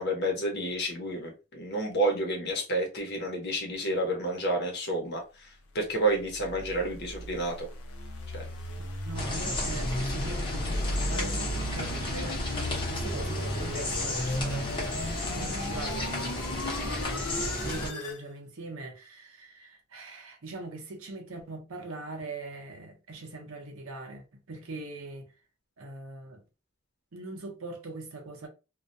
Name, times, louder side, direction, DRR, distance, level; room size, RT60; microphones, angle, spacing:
voice 1, 0.0-5.5 5.7-7.7 8.3-8.5, right 1 dB, 55° left, 0.9 m, -30 dB
sound 1, 6.0-18.2, left 1 dB, 90° left, 0.6 m, -36 dB
voice 2, 9.0-25.3 25.8-26.4 27.1-28.5, right 2 dB, 75° right, 0.6 m, -41 dB
sound 2, 9.1-17.9, left 1 dB, 25° left, 0.8 m, -33 dB
2.3 x 2.1 x 2.6 m
head